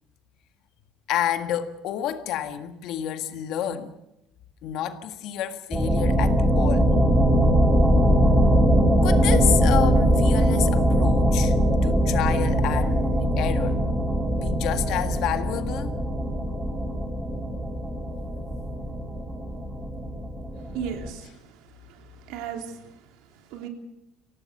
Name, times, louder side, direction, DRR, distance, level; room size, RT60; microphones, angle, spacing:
voice 1, 1.1-4.0 4.6-6.9 9.0-11.5 11.8-13.8 14.3-16.0, left 10 dB, 55° left, 1.7 m, -29 dB
sound 1, 5.7-21.1, equal, 10° right, 3.1 m, -21 dB
voice 2, 20.7-21.3 21.9-22.9 23.5-23.7, right 7 dB, 75° right, 3.3 m, -35 dB
24.5 x 17.5 x 6.7 m
cardioid pair, 165°, 0 cm